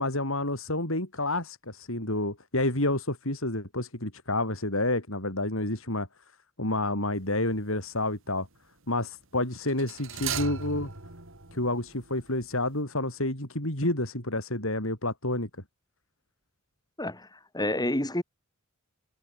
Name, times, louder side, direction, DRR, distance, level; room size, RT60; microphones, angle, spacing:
voice 1, 0.0-6.1 6.6-8.5 8.9-10.9 11.5-15.5, left 2 dB, 65° left, 7.4 m, -29 dB
sound 1, 7.2-7.6 9.7-12.5 12.7-12.8, right 6 dB, 60° right, 3.9 m, -37 dB
voice 2, 17.0-17.3 17.5-18.2, left 1 dB, 20° left, 4.5 m, -28 dB
head